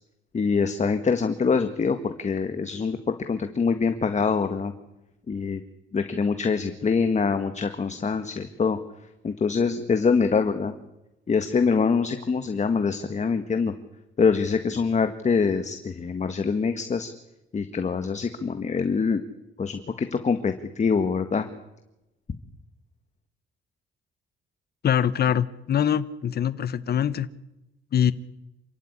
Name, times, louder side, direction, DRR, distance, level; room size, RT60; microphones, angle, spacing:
voice 1, 0.3-4.7 5.3-5.6 5.9-8.8 9.2-10.7 11.3-13.7 14.2-17.1 17.5-19.2 19.6-21.5, left 5 dB, 35° left, 8 dB, 1.8 m, -24 dB
voice 2, 24.8-27.3 27.9-28.1, left 9 dB, 55° left, 14 dB, 1.1 m, -23 dB
28.0 x 15.0 x 9.9 m, 0.94 s
cardioid pair, 90°, 20 cm